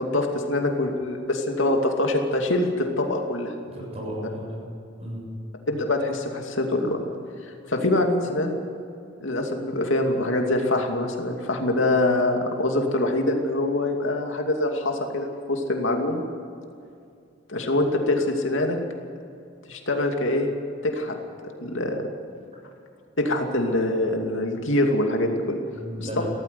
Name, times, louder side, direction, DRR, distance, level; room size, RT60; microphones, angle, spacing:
voice 1, 0.0-3.5 5.7-7.0 7.7-8.6 9.2-16.2 17.5-18.8 19.7-20.5 20.8-21.2 21.4-22.0 23.2-25.6 26.2-26.3, left 1 dB, 85° left, 3 dB, 2.6 m, -24 dB
voice 2, 3.6-4.6 5.0-5.3 25.8-26.2, equal, 35° right, -2 dB, 7.3 m, -34 dB
17.5 x 14.5 x 10.0 m, 2.4 s
head